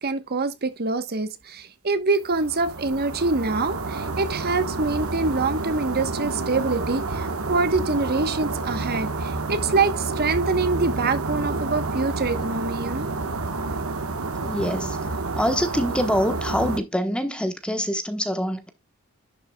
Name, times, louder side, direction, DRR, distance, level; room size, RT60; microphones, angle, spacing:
voice 1, 0.0-13.1, right 3 dB, 45° right, 1.1 m, -25 dB
sound 1, 2.3-16.8, right 3 dB, 65° right, 1.3 m, -29 dB
voice 2, 14.4-18.7, equal, 5° left, 1.1 m, -25 dB
11.0 x 7.4 x 2.3 m
head